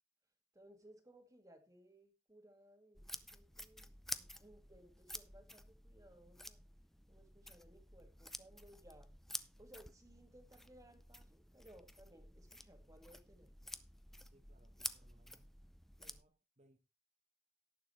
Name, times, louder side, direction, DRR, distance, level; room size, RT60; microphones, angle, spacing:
voice 1, 0.5-6.6 7.1-9.1 9.6-13.5, right 1 dB, 20° right, 2.0 m, -62 dB
sound 1, 2.9-16.2, left 1 dB, ahead, 0.5 m, -51 dB
voice 2, 14.2-15.6 16.0-16.8, right 1 dB, 40° right, 1.1 m, -70 dB
18.0 x 6.7 x 3.2 m
head